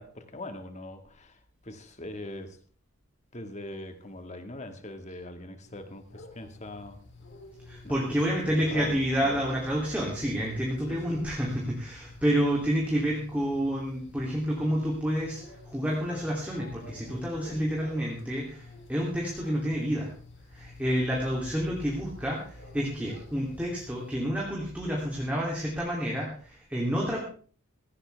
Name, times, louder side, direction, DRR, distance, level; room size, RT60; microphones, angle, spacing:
voice 1, 0.0-2.6 3.3-7.0 7.8-8.2 8.5-9.5 10.9-11.2, left 1 dB, 30° left, 7 dB, 1.9 m, -41 dB
sound 1, 5.6-24.2, left 2 dB, 55° left, 3.3 m, -49 dB
voice 2, 7.7-20.1 20.5-27.2, equal, 5° right, -4 dB, 2.9 m, -29 dB
17.5 x 16.0 x 3.5 m, 0.43 s
head